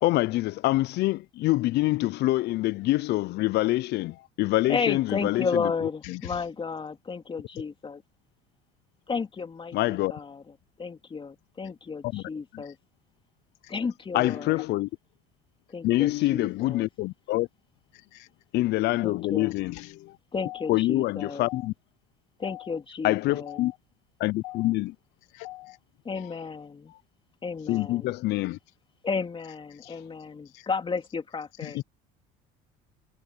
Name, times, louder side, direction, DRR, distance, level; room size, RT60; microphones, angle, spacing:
voice 1, 0.0-5.6 6.1-6.2 9.7-10.1 12.1-12.2 12.5-12.6 14.1-14.9 15.8-17.5 18.5-19.7 20.0-20.1 20.7-21.7 23.0-23.7 24.2-24.9 27.7-28.6 31.7-31.8, left 18 dB, 60° left, 0.5 m, -25 dB
voice 2, 4.7-8.0 9.1-12.8 13.7-14.6 15.7-16.9 19.0-19.5 20.3-21.5 22.4-23.6 26.0-26.9 27.4-28.1 29.0-31.8, left 5 dB, 25° left, 3.2 m, -33 dB
voice 3, 6.0-6.4 12.6-12.7 13.6-13.7 14.2-14.7 17.9-18.3 19.7-19.9 20.4-20.8 21.4-21.7 22.4-22.8 23.5-23.8 24.4-24.7 25.3-25.8 29.7-29.9 30.5-30.7 31.6-31.8, left 18 dB, 85° left, 2.8 m, -43 dB
supercardioid pair, 105°, 19 cm